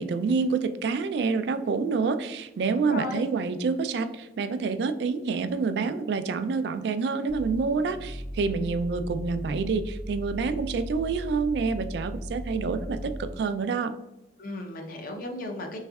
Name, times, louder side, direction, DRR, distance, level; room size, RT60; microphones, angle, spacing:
voice 1, 0.0-13.9, right 4 dB, 65° right, 10 dB, 0.3 m, -27 dB
voice 2, 2.8-3.2 14.4-15.8, left 2 dB, 50° left, 3 dB, 0.6 m, -35 dB
sound 1, 7.3-13.5, equal, 10° left, 0.7 m, -37 dB
3.5 x 3.1 x 2.3 m, 0.89 s
head